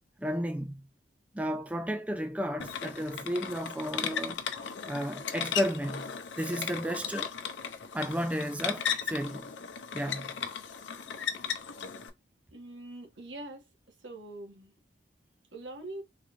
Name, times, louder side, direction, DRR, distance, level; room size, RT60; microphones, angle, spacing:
voice 1, 0.2-0.7 1.3-4.4 4.9-6.1 6.4-7.3 7.9-9.5 9.9-10.3, equal, 10° right, 0.4 m, -33 dB
sound 1, 2.6-12.1, left 8 dB, 90° left, 0.6 m, -36 dB
voice 2, 12.5-13.6 14.0-14.7 15.5-16.0, right 2 dB, 85° right, 1.4 m, -43 dB
3.8 x 3.0 x 2.4 m
head